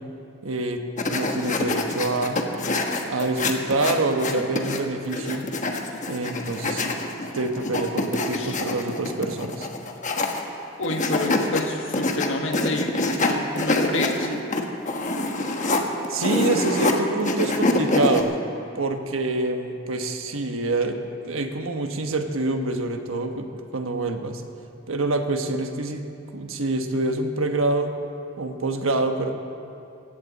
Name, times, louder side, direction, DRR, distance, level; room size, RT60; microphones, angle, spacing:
voice 1, 0.4-0.8 1.1-2.4 3.0-5.4 6.1-6.9 7.3-9.7 16.1-18.4 18.7-23.5 23.7-24.4 24.9-27.9 28.4-29.3, right 2 dB, 85° right, 5 dB, 1.2 m, -26 dB
sound 1, 1.0-4.8 5.1-10.5 10.8-11.6 11.9-16.9 17.2-18.2, left 2 dB, 35° left, 1.1 m, -25 dB
voice 2, 10.8-14.3, left 2 dB, 70° left, 3 dB, 1.6 m, -29 dB
18.5 x 16.0 x 4.1 m, 2.6 s
head